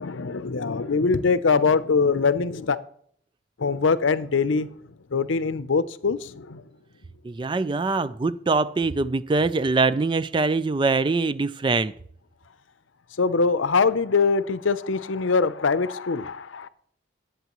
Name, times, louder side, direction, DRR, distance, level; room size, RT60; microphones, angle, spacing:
voice 1, 0.0-2.8 3.6-4.7 5.1-6.6 13.2-16.7, left 4 dB, 85° left, 0.6 m, -23 dB
voice 2, 7.2-11.9, right 3 dB, 25° right, 0.3 m, -23 dB
19.0 x 8.0 x 3.0 m
head